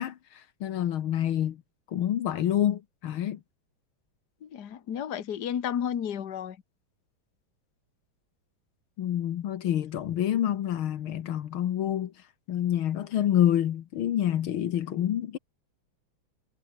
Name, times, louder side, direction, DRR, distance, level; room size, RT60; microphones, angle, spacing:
voice 1, 0.0-1.6 1.9-3.4 9.0-12.1 12.5-15.4, left 11 dB, 75° left, 1.9 m, -27 dB
voice 2, 4.4-6.6, left 9 dB, 55° left, 1.9 m, -32 dB
omnidirectional pair, 2.3 m